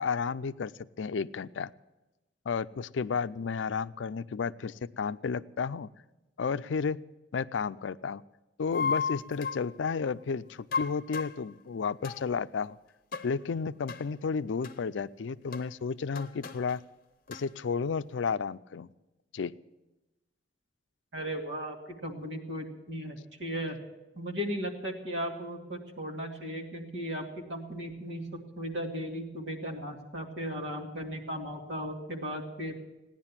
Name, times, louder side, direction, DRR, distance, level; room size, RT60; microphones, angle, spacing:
voice 1, 0.0-1.7 2.5-5.9 6.4-7.0 7.3-8.2 8.6-12.8 13.2-16.8 17.3-18.9 19.3-19.5, left 5 dB, 80° left, 14 dB, 0.4 m, -32 dB
sound 1, 8.7-9.7 10.7-11.4 12.0-12.3 13.1-13.3 13.9-14.0 14.6-14.8 15.5-15.6 16.1-16.8 17.3-17.4, left 5 dB, 50° left, 0.8 m, -34 dB
voice 2, 21.1-23.8 24.2-32.8, equal, 70° right, 1 dB, 2.3 m, -36 dB
16.5 x 10.5 x 7.3 m, 1.0 s
head